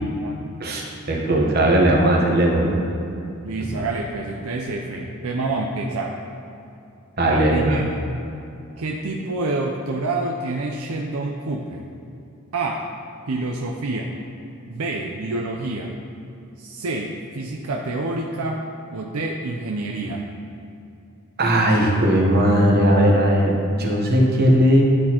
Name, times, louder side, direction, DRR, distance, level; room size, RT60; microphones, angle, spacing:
voice 1, 0.0-0.4 3.4-6.2 7.2-8.1 8.8-11.9 12.5-12.9 13.3-14.1 14.7-15.9 16.6-18.6 18.9-20.3, right 2 dB, 75° right, 0 dB, 0.5 m, -27 dB
voice 2, 0.6-2.8 7.2-7.8 21.4-24.8, right 1 dB, 45° right, -1 dB, 1.0 m, -18 dB
11.5 x 4.2 x 2.9 m, 2.7 s
head